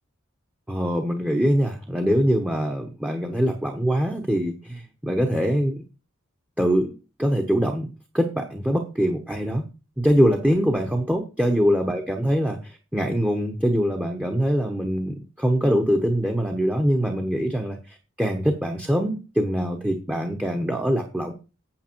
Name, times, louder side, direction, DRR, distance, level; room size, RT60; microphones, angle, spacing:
voice 1, 0.7-5.8 6.6-7.9 8.1-9.6 10.0-21.3, equal, 5° right, 5 dB, 1.0 m, -23 dB
8.8 x 8.1 x 4.5 m, 0.31 s
head